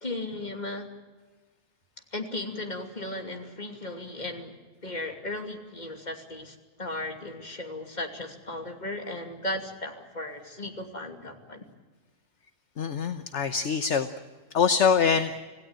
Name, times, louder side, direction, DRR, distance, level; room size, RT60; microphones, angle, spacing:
voice 1, 0.0-0.9 2.1-4.5 4.8-11.6, left 1 dB, 30° left, 3 dB, 2.9 m, -36 dB
voice 2, 12.8-14.1 14.5-15.4, left 6 dB, 60° left, 9 dB, 1.3 m, -24 dB
27.0 x 17.0 x 8.9 m, 1.3 s
omnidirectional pair, 1.4 m